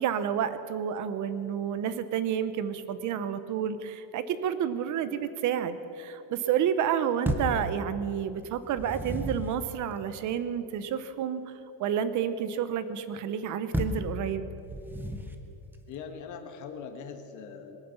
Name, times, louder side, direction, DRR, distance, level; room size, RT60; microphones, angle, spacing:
voice 1, 0.0-11.5 11.8-14.5, right 8 dB, 40° right, 12 dB, 0.8 m, -30 dB
sound 1, 7.2-7.6 8.5-9.6 13.7-14.1 14.7-15.4, equal, 5° right, 0.5 m, -32 dB
voice 2, 15.9-17.8, left 6 dB, 40° left, 5 dB, 1.4 m, -41 dB
21.0 x 9.4 x 7.1 m, 2.9 s
cardioid pair, 170°, 48 cm